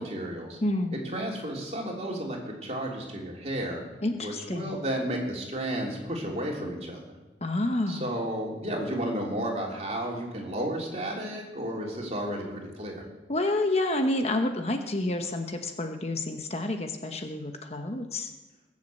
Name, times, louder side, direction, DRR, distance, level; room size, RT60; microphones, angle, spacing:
voice 1, 0.0-0.6 0.9-3.8 4.2-7.1 7.9-13.0, right 1 dB, 35° right, -1 dB, 3.4 m, -32 dB
voice 2, 0.6-1.0 4.0-4.8 7.4-8.1 13.3-18.3, left 2 dB, 35° left, 5 dB, 1.1 m, -29 dB
21.0 x 7.6 x 7.8 m, 1.2 s
head